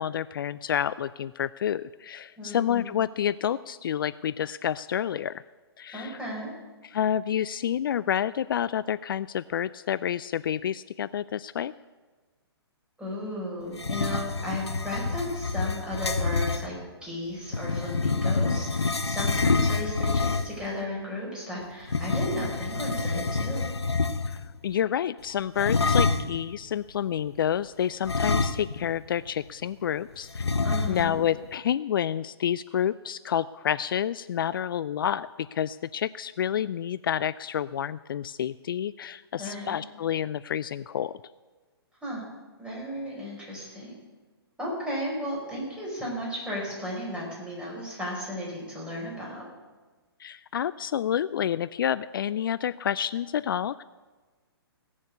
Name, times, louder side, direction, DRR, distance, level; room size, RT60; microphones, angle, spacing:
voice 1, 0.0-5.4 5.8-6.2 6.8-11.7 24.3-24.4 24.6-30.5 30.9-41.1 50.2-53.8, left 9 dB, 55° left, 16 dB, 0.4 m, -29 dB
voice 2, 2.4-2.9 5.9-6.5 13.0-16.7 17.0-23.7 30.6-31.2 39.4-39.8 42.0-42.2 42.6-43.9 44.6-49.4, left 1 dB, 5° right, -4 dB, 5.0 m, -34 dB
sound 1, 13.7-16.7 17.5-20.7 21.8-24.5 25.6-26.4 28.0-29.0 29.3-29.4 30.3-31.2, left 4 dB, 85° left, 0.9 m, -27 dB
17.5 x 7.2 x 8.3 m, 1.3 s
figure-of-eight pair, 130°, 14 cm